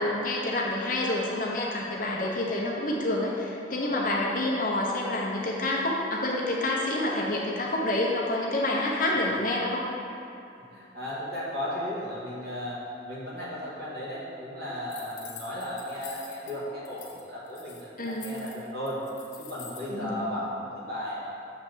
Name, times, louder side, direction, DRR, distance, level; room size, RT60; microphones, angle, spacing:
voice 1, 0.0-9.8 18.0-18.4 19.9-20.3, left 1 dB, 45° left, -3 dB, 0.9 m, -28 dB
voice 2, 10.7-12.8 13.1-19.0 19.4-21.3, left 1 dB, 55° right, -7 dB, 1.7 m, -35 dB
sound 1, 14.9-16.5 16.8-17.2 17.5-19.9, left 6 dB, 85° left, 1.0 m, -46 dB
7.1 x 3.3 x 6.1 m, 2.6 s
head